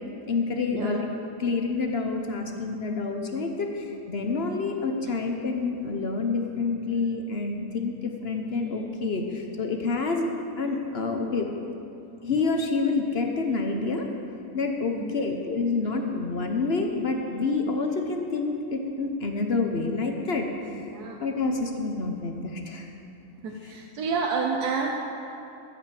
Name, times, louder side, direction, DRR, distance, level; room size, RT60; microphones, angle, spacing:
voice 1, 0.3-1.1 1.4-10.3 10.6-11.5 12.2-14.1 14.5-20.5 21.2-22.9 23.6-23.7, left 3 dB, 50° left, 3 dB, 0.9 m, -28 dB
voice 2, 14.9-15.2 20.7-21.2 23.4-24.9, right 5 dB, 85° right, 1 dB, 1.3 m, -29 dB
14.5 x 5.2 x 7.5 m, 3.0 s
omnidirectional pair, 1.7 m